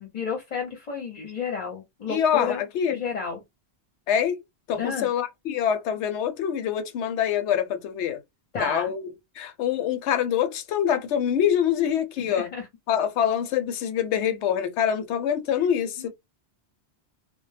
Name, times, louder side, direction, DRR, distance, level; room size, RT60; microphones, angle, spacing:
voice 1, 0.0-2.6 2.9-3.4 4.7-5.1 8.5-8.9 12.2-12.7 16.0-16.1, left 5 dB, 45° left, 0.7 m, -32 dB
voice 2, 2.1-3.0 4.1-4.4 4.7-8.2 8.6-9.1 9.4-12.5 12.9-16.1, left 9 dB, 85° left, 0.9 m, -25 dB
2.1 x 2.0 x 3.2 m
omnidirectional pair, 1.1 m